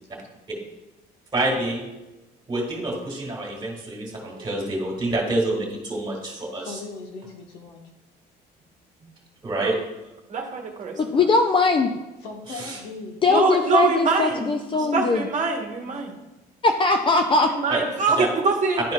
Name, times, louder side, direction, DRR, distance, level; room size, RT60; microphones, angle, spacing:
voice 1, 1.3-1.8 2.5-6.8 9.4-9.8 12.5-12.8 17.7-17.8 18.2-18.3 18.8-18.9, right 2 dB, 25° right, 0 dB, 2.1 m, -27 dB
voice 2, 6.6-7.8 12.2-13.2 14.7-15.2 15.8-16.2, left 3 dB, 85° left, 1 dB, 1.3 m, -39 dB
voice 3, 10.3-10.9 13.3-14.5 14.9-16.1 17.5-18.8, right 4 dB, 45° right, 2 dB, 1.2 m, -24 dB
voice 4, 11.0-11.9 13.2-15.3 16.6-17.5, left 3 dB, 30° left, 5 dB, 0.4 m, -20 dB
11.0 x 4.2 x 2.3 m, 1.0 s
cardioid pair, 110°, 17 cm